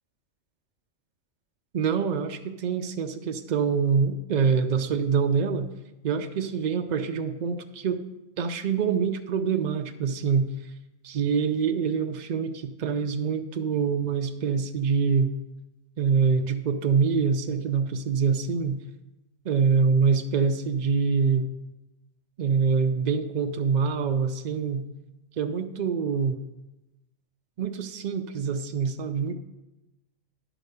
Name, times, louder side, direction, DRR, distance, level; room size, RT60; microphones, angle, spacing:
voice 1, 1.7-5.7 6.0-8.1 8.4-10.5 11.0-15.3 16.0-18.8 19.5-21.4 22.4-24.9 25.4-26.4 27.6-29.3, right 6 dB, 60° right, 5 dB, 0.4 m, -25 dB
10.5 x 5.0 x 6.7 m, 0.97 s
omnidirectional pair, 1.3 m